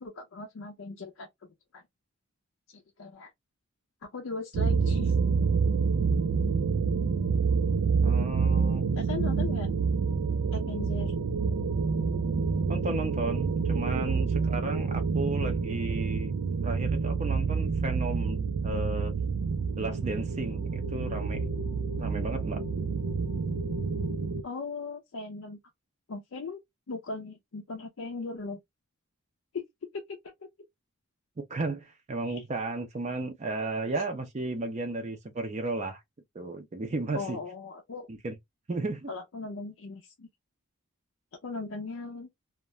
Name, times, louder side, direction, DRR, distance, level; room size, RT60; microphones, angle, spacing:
voice 1, 0.0-1.3 1.7-1.8 2.7-3.3 4.0-5.1 8.9-9.7 10.5-11.1 24.4-25.6 26.1-26.6 26.9-28.6 29.5-29.6 29.9-30.5 32.2-32.4 34.0-34.1 37.1-38.1 39.1-40.3 41.4-42.3, left 3 dB, 60° left, 0.5 m, -38 dB
sound 1, 4.5-24.4, right 5 dB, 90° right, 0.4 m, -28 dB
voice 2, 8.0-8.9 12.7-16.3 16.6-19.1 19.8-21.4 22.0-22.6 31.5-36.0 36.3-37.4 38.1-38.3 38.7-39.1, right 2 dB, 30° right, 0.4 m, -34 dB
2.4 x 2.1 x 2.9 m
head